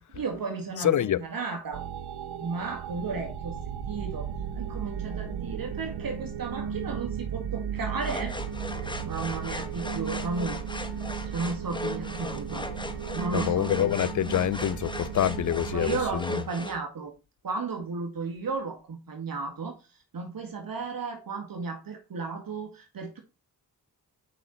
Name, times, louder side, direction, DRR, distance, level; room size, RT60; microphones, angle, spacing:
voice 1, 0.1-1.8 2.4-3.6 3.9-4.3 4.5-8.3 9.0-10.6 11.0-12.7 13.1-13.7 15.7-17.1 17.4-23.2, right 4 dB, 65° right, 2.1 m, -34 dB
voice 2, 0.8-1.2 13.3-16.3, left 11 dB, 50° left, 0.6 m, -26 dB
sound 1, 1.7-16.2, right 7 dB, 90° right, 0.7 m, -35 dB
sound 2, 8.0-16.8, left 1 dB, 10° left, 1.4 m, -38 dB
8.1 x 5.4 x 4.3 m
cardioid pair, 60°, 38 cm